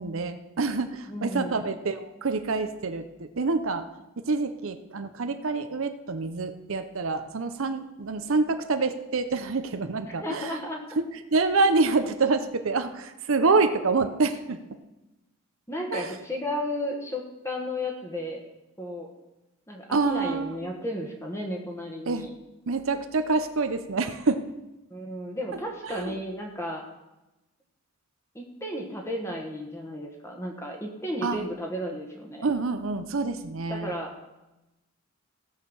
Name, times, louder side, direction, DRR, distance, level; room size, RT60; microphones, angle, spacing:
voice 1, 0.0-3.9 4.2-10.6 11.0-14.6 15.9-16.2 19.9-20.5 22.1-22.3 22.7-24.4 25.8-26.2 31.2-31.4 32.4-33.9, right 3 dB, 70° right, 9 dB, 0.7 m, -27 dB
voice 2, 1.1-1.6 10.2-10.8 15.7-18.4 18.8-19.1 19.7-22.3 24.9-26.8 28.3-32.5 33.7-34.1, left 1 dB, 15° left, 0 dB, 1.3 m, -33 dB
16.5 x 6.6 x 5.4 m, 1.0 s
head